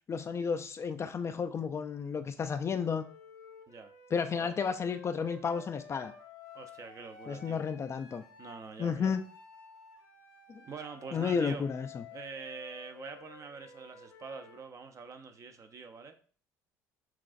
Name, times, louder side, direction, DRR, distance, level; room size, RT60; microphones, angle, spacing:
voice 1, 0.1-3.0 4.1-6.1 7.3-8.2 8.8-9.2 10.5-10.6 11.1-12.0, left 6 dB, 35° left, 9 dB, 0.4 m, -32 dB
Wind instrument woodwind instrument, 2.8-8.6 9.0-14.7, left 6 dB, 75° left, 1.3 m, -53 dB
voice 2, 6.5-7.6 8.4-9.2 10.6-11.7 12.1-16.2, right 5 dB, 40° right, 8 dB, 0.6 m, -45 dB
5.7 x 2.4 x 2.5 m, 0.43 s
hypercardioid pair, 65°, 8 cm